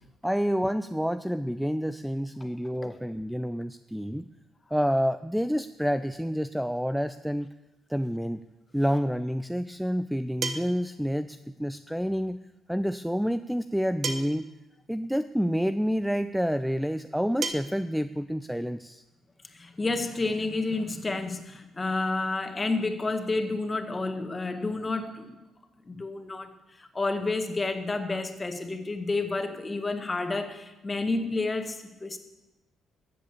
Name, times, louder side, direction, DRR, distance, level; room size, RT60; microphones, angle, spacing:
voice 1, 0.2-4.3 4.7-7.5 7.9-8.4 8.7-12.4 12.7-14.5 14.9-19.0, equal, ahead, 12 dB, 0.4 m, -28 dB
sound 1, 8.7-8.8 10.4-10.9 12.4-12.5 14.0-14.5 15.7-15.8 17.4-17.5, right 4 dB, 55° right, 1.2 m, -32 dB
voice 2, 19.5-25.4 25.9-32.2, left 3 dB, 25° left, 7 dB, 1.8 m, -30 dB
13.5 x 7.9 x 8.5 m, 1.0 s
cardioid pair, 90°, 0 cm